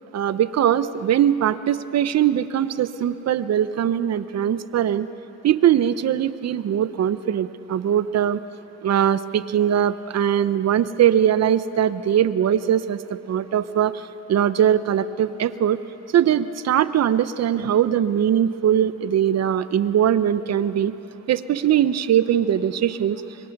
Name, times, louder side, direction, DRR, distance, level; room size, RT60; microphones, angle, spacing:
voice 1, 0.1-5.1 5.4-8.4 8.8-15.8 16.1-20.9 21.3-23.2, right 10 dB, 60° right, 14 dB, 0.8 m, -21 dB
25.5 x 23.0 x 6.0 m, 3.0 s
cardioid pair, 90°, 30 cm